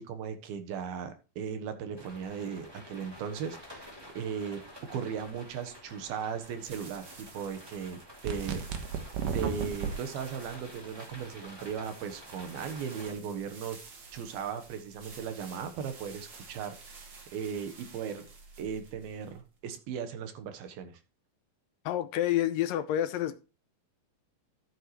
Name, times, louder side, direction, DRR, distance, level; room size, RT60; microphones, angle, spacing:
voice 1, 0.0-3.9 4.2-4.6 4.9-8.6 9.3-13.8 14.1-16.8 17.3-18.3 18.6-21.0, right 7 dB, 85° right, 3.1 m, -37 dB
sound 1, 2.0-13.1, equal, 10° right, 2.0 m, -50 dB
sound 2, 6.4-19.6, right 4 dB, 45° right, 1.7 m, -51 dB
sound 3, 8.2-9.9, right 6 dB, 70° right, 2.8 m, -33 dB
voice 2, 21.9-23.4, left 12 dB, 80° left, 2.3 m, -28 dB
13.5 x 7.9 x 3.1 m
omnidirectional pair, 4.2 m